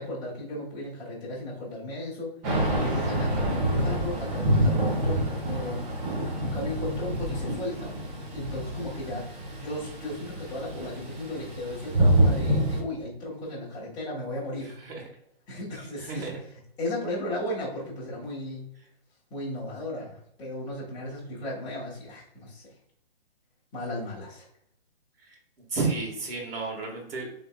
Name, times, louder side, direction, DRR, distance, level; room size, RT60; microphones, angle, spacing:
voice 1, 0.0-2.3 2.8-5.9 6.4-8.0 8.3-9.3 9.6-14.7 15.5-16.4 16.8-18.7 19.3-22.7 23.7-24.5, left 1 dB, 15° left, -8 dB, 1.3 m, -35 dB
Thunder / Rain, 2.4-12.8, right 1 dB, 15° right, 0.6 m, -27 dB
voice 2, 14.6-15.1 16.0-16.4 25.2-25.4 25.7-27.3, right 3 dB, 65° right, 1 dB, 1.7 m, -32 dB
5.5 x 3.4 x 2.3 m, 0.71 s
hypercardioid pair, 155°, 31 cm